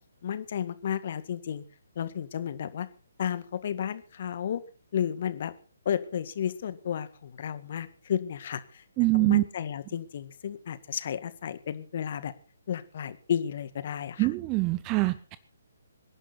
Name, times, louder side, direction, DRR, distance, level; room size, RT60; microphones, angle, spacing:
voice 1, 0.2-1.6 2.0-2.9 3.2-4.6 4.9-5.5 5.9-8.8 9.1-12.3 12.7-14.3, left 9 dB, 45° left, 13 dB, 1.8 m, -32 dB
voice 2, 9.0-9.4 14.2-15.4, right 24 dB, 25° right, 16 dB, 0.8 m, -24 dB
26.0 x 11.0 x 4.2 m, 0.39 s
figure-of-eight pair, 140°, 0 cm